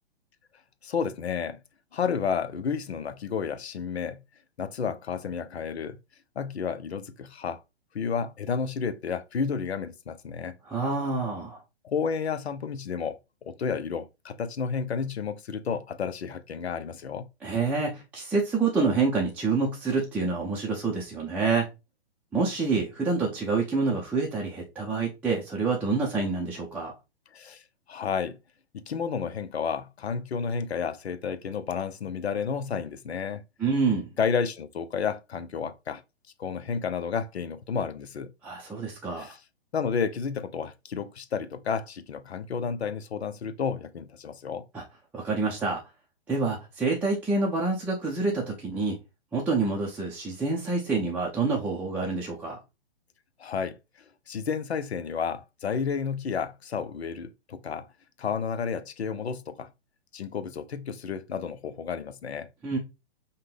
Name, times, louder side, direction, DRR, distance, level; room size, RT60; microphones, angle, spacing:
voice 1, 0.8-1.6 1.9-4.2 4.6-6.0 6.4-7.6 7.9-10.6 11.8-13.2 13.4-17.3 27.3-27.6 27.9-28.4 28.7-33.4 34.2-36.0 36.4-38.3 39.2-39.4 39.7-44.6 53.4-53.8 54.3-57.9 58.2-59.7 60.1-62.5, left 6 dB, 80° left, 0.7 m, -31 dB
voice 2, 10.7-11.6 17.4-21.7 22.3-26.9 33.6-34.1 38.4-39.3 44.7-44.8 45.1-45.8 46.3-49.0 49.3-52.6 62.6-62.8, right 4 dB, 5° right, 0.5 m, -27 dB
5.6 x 2.2 x 3.4 m
figure-of-eight pair, 120°, 32 cm